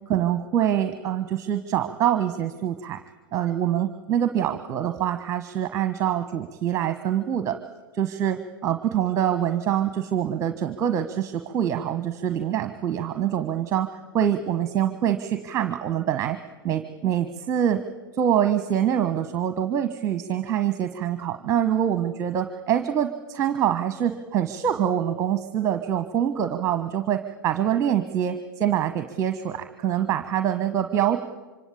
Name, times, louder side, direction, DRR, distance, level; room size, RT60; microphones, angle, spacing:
voice 1, 0.1-3.0 3.3-7.6 8.0-13.9 14.1-16.4 16.6-17.8 18.2-31.2, right 10 dB, 25° right, 9 dB, 1.3 m, -25 dB
25.5 x 25.0 x 8.6 m, 1.2 s
figure-of-eight pair, 100°, 12 cm